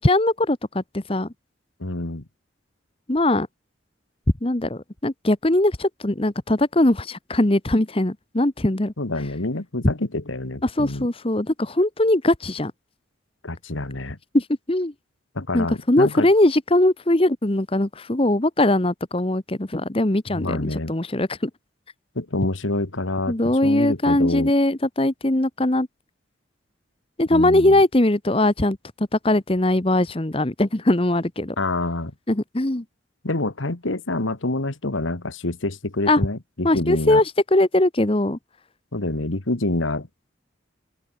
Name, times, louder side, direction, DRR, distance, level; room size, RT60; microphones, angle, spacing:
voice 1, 0.0-1.3 3.1-3.5 4.4-8.9 10.6-12.7 14.3-14.9 15.5-21.5 23.3-25.9 27.2-31.5 32.3-32.8 36.1-36.2 36.6-38.4, left 1 dB, 30° left, 1.1 m, -21 dB
voice 2, 1.8-2.3 9.0-11.1 13.4-14.2 15.4-16.3 20.3-20.9 22.2-23.3 23.6-24.5 27.3-27.8 31.6-32.1 33.2-37.2 38.9-40.1, left 2 dB, 85° left, 1.8 m, -27 dB
open air
head